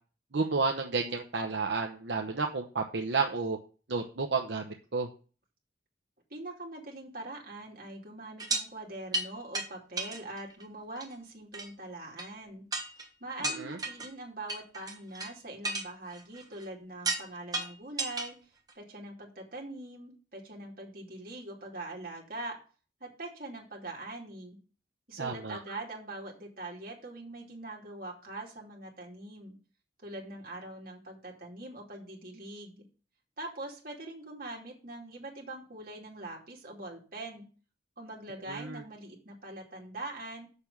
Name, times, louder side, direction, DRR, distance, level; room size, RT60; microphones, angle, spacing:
voice 1, 0.3-3.6 3.9-5.1 13.6-13.8 25.2-25.6 38.5-38.8, right 4 dB, 75° right, 3 dB, 0.9 m, -31 dB
voice 2, 6.3-12.6 13.2-18.4 18.7-22.6 23.0-24.6 25.1-29.6 30.0-32.8 33.4-37.5 38.0-40.5, right 2 dB, 50° right, 0 dB, 2.6 m, -43 dB
sound 1, 8.4-8.6 9.1-9.3 9.5-9.7 10.0-10.6 11.0-11.1 11.5-11.7 12.2-12.3 12.7-13.1 13.4-14.1 14.5-15.3 15.6-16.6 17.0-17.3 17.5-18.3 18.7-18.8, right 2 dB, 20° right, 1.2 m, -33 dB
6.9 x 6.0 x 6.9 m, 0.37 s
head